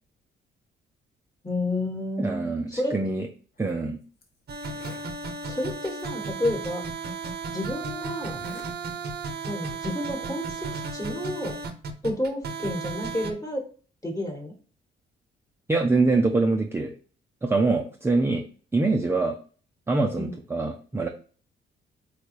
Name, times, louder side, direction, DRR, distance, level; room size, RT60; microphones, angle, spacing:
voice 1, 1.4-2.9 5.5-6.8 7.5-8.4 9.4-11.5 12.0-13.6 14.0-14.5 20.1-20.3, left 1 dB, 15° left, 1 dB, 1.2 m, -30 dB
voice 2, 2.2-3.2 3.6-4.0 15.7-16.9 17.4-18.5 18.7-19.4 19.9-21.1, right 3 dB, 10° right, 2 dB, 0.4 m, -24 dB
Zipper (clothing), 3.6-3.7 4.2-4.3 4.6-5.1 6.0-6.1 7.0-7.1 8.2-8.7 9.1-9.4, left 2 dB, 55° left, 0.9 m, -47 dB
sound 1, 4.5-13.3, right 4 dB, 55° right, 0.6 m, -34 dB
3.9 x 2.2 x 3.1 m, 0.39 s
cardioid pair, 90°, 20 cm